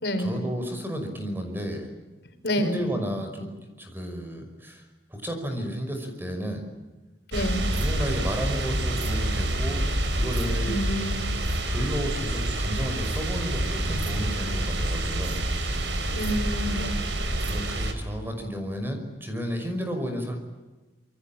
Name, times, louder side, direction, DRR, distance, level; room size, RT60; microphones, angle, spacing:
voice 1, 0.2-1.9 2.6-3.5 3.8-4.8 5.1-6.6 7.8-10.7 11.7-15.4 17.4-20.4, equal, 10° right, 5 dB, 5.6 m, -32 dB
voice 2, 2.4-2.9 7.3-7.6 10.6-11.3 16.1-16.8, equal, 65° left, 6 dB, 4.9 m, -28 dB
sound 1, 7.3-17.9, right 1 dB, 90° right, 4.6 m, -27 dB
27.5 x 24.5 x 8.9 m, 1.2 s
head